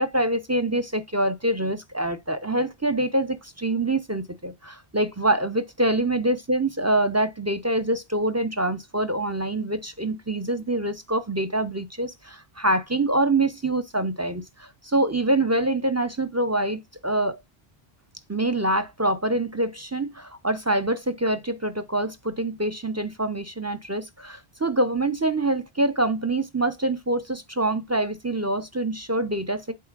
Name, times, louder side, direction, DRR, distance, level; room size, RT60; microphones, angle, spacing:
voice 1, 0.0-17.4 18.3-29.7, right 1 dB, 25° right, 0.4 m, -25 dB
8.4 x 5.2 x 2.4 m
omnidirectional pair, 1.1 m